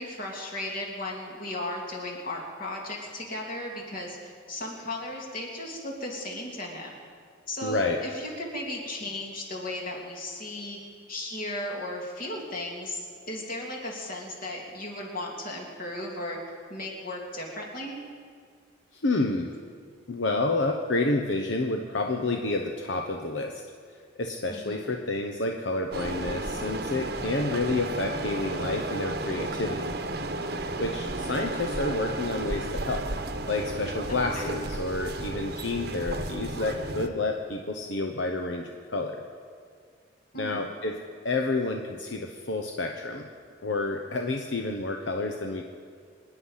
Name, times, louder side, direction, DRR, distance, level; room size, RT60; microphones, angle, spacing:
voice 1, 0.0-6.9 7.5-10.8 11.1-13.0 13.3-16.4 16.7-18.0 24.5-25.0 34.1-34.6 40.3-40.7, left 1 dB, 45° left, -1 dB, 3.0 m, -36 dB
voice 2, 7.6-8.0 18.9-19.5 20.1-23.6 24.2-29.9 30.8-33.0 33.5-39.2 40.4-41.0 41.2-43.3 43.6-45.6, left 2 dB, 70° left, 3 dB, 1.0 m, -29 dB
sound 1, 25.9-37.1, right 2 dB, 55° right, 1.0 m, -33 dB
25.0 x 10.0 x 5.7 m, 2.1 s
head